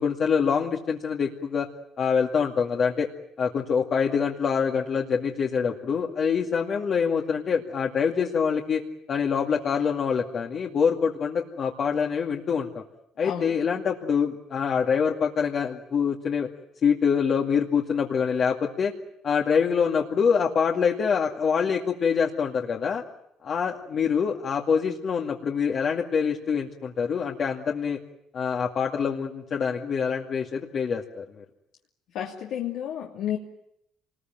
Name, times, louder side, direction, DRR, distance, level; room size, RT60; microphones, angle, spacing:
voice 1, 0.0-1.7 2.0-3.1 3.4-8.8 9.1-12.8 13.2-16.5 16.8-18.9 19.2-23.0 23.4-28.0 28.3-31.4, left 6 dB, 55° left, 0 dB, 2.2 m, -25 dB
voice 2, 13.2-13.5 32.1-33.4, left 10 dB, 80° left, -1 dB, 2.7 m, -31 dB
27.0 x 21.0 x 9.2 m, 0.76 s
supercardioid pair, 85°, 0 cm